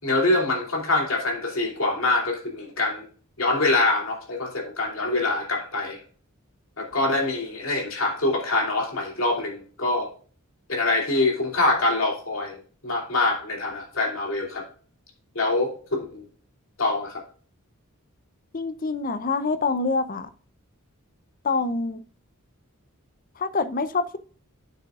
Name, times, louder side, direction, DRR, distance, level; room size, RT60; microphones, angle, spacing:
voice 1, 0.0-3.0 3.4-6.0 6.8-10.1 10.7-14.6 15.3-16.3 16.8-17.2, left 2 dB, 65° left, 0 dB, 2.9 m, -25 dB
voice 2, 18.5-20.3 21.4-22.0 23.4-24.2, left 3 dB, 40° left, 13 dB, 0.6 m, -26 dB
9.1 x 8.0 x 2.4 m, 0.42 s
head